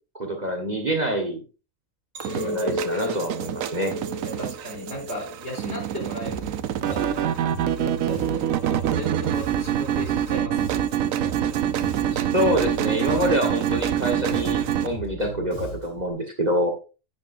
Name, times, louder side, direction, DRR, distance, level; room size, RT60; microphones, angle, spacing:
voice 1, 0.2-1.4 2.3-3.9 12.1-16.7, equal, 35° right, 2 dB, 1.6 m, -26 dB
Chink clink, 2.1-6.5 6.9-7.4, left 2 dB, 70° right, 1.6 m, -35 dB
sound 1, 2.2-14.9, right 10 dB, 90° right, 1.1 m, -26 dB
voice 2, 2.3-2.7 4.2-6.5 6.8-8.5 9.0-10.9, equal, 55° left, 0 dB, 3.9 m, -36 dB
Bass guitar, 6.2-16.1, right 2 dB, 90° left, 3.0 m, -37 dB
10.0 x 9.2 x 2.6 m, 0.32 s
omnidirectional pair, 1.4 m